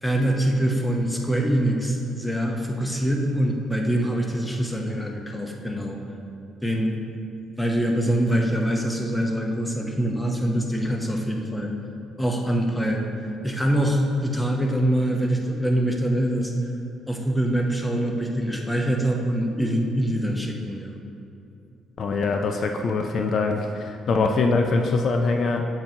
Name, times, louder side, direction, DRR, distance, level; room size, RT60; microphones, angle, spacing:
voice 1, 0.0-6.0 6.6-6.9 7.6-11.7 12.2-13.1 13.4-16.5 17.1-20.9, right 1 dB, 5° left, 1 dB, 0.8 m, -24 dB
voice 2, 22.0-25.6, left 3 dB, 45° left, 4 dB, 0.4 m, -23 dB
8.8 x 7.7 x 2.9 m, 2.7 s
cardioid pair, 135°, 0 cm